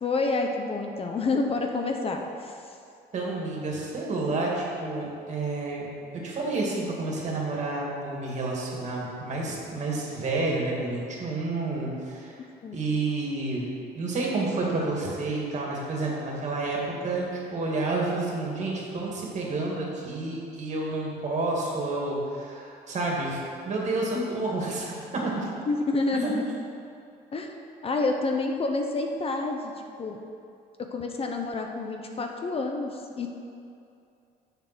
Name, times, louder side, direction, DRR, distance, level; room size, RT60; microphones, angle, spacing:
voice 1, 0.0-2.5 12.6-12.8 24.1-24.3 25.7-26.4 27.3-27.5 27.8-29.7 30.0-30.2 30.8-33.3, left 3 dB, 35° left, 3 dB, 0.8 m, -28 dB
voice 2, 3.1-5.9 6.2-12.3 12.7-13.7 13.9-16.8 17.0-25.5 26.2-26.3, right 2 dB, 45° right, -3 dB, 2.4 m, -30 dB
7.5 x 6.8 x 6.2 m, 2.6 s
cardioid pair, 110°, 17 cm